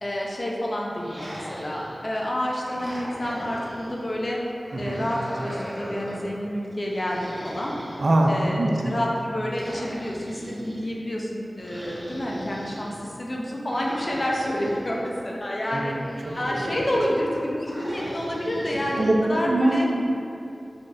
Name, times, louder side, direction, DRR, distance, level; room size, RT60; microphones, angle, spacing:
voice 1, 0.0-4.4 4.8-7.7 8.3-15.9 16.4-19.9, equal, 55° left, -3 dB, 0.7 m, -29 dB
sound 1, 0.9-2.1 2.6-4.0 4.6-6.3 6.9-8.6 9.5-10.8 11.6-12.9 13.7-15.0 15.6-17.2 17.6-19.1, equal, 55° right, 1.4 m, -39 dB
voice 2, 4.7-5.1 8.0-9.0 15.7-16.0 19.0-20.1, right 1 dB, 75° right, 0 dB, 0.4 m, -23 dB
5.7 x 3.1 x 2.6 m, 2.7 s
cardioid pair, 40°, 0 cm